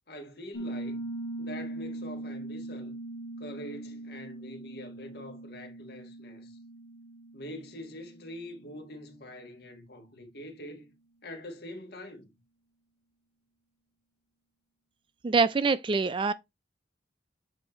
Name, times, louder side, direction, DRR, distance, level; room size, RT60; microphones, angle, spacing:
voice 1, 0.1-1.0 1.4-2.9 3.4-6.6 7.3-10.9 11.2-12.3, left 1 dB, 55° left, 1.4 m, -44 dB
Piano, 0.5-9.1, right 2 dB, 80° left, 1.3 m, -41 dB
voice 2, 15.2-16.3, right 4 dB, 25° right, 0.3 m, -25 dB
7.9 x 2.8 x 4.3 m
head